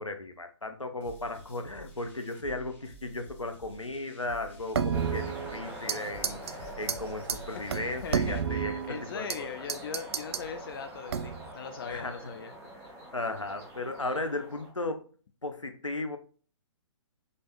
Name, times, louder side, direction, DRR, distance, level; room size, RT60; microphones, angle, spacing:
voice 1, 0.0-9.5 11.9-12.2 12.8-12.9 13.1-15.1 15.4-16.2, left 2 dB, 90° left, 7 dB, 0.8 m, -36 dB
sound 1, 1.0-8.4, right 3 dB, 15° left, 1.5 m, -50 dB
sound 2, 4.7-6.0 6.2-6.5 6.9-7.0 7.3-7.4 7.7-9.4 9.7-10.5 11.1-11.5, right 7 dB, 60° right, 0.4 m, -31 dB
sound 3, 4.9-14.7, right 1 dB, 20° right, 1.6 m, -45 dB
voice 2, 8.0-12.5, left 6 dB, 50° left, 7 dB, 0.6 m, -40 dB
5.3 x 3.4 x 2.5 m, 0.39 s
figure-of-eight pair, 125°, 16 cm